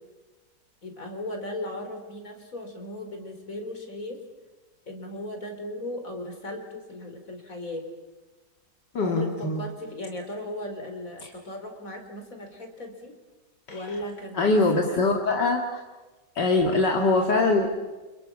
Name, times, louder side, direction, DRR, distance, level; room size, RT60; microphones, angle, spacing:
voice 1, 0.8-4.2 4.9-7.9 9.0-13.1 13.7-15.0, left 1 dB, 50° left, 4 dB, 4.6 m, -37 dB
voice 2, 8.9-9.6 13.7-13.8 14.4-15.8 16.4-17.7, left 3 dB, 70° left, 1 dB, 2.6 m, -23 dB
30.0 x 28.5 x 6.1 m, 1.2 s
omnidirectional pair, 1.9 m